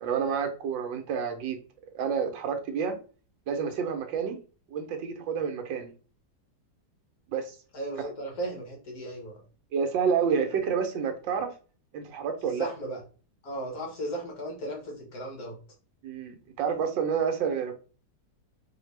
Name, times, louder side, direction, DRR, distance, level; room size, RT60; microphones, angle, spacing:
voice 1, 0.0-1.6 1.9-2.9 3.5-4.4 4.7-5.9 7.3-7.6 9.7-11.5 11.9-12.7 16.0-17.7, right 6 dB, 90° right, 6 dB, 1.5 m, -29 dB
voice 2, 7.7-9.4 12.4-13.0 13.4-15.6, right 1 dB, 55° left, 1 dB, 1.8 m, -36 dB
4.2 x 2.8 x 3.2 m, 0.37 s
omnidirectional pair, 2.0 m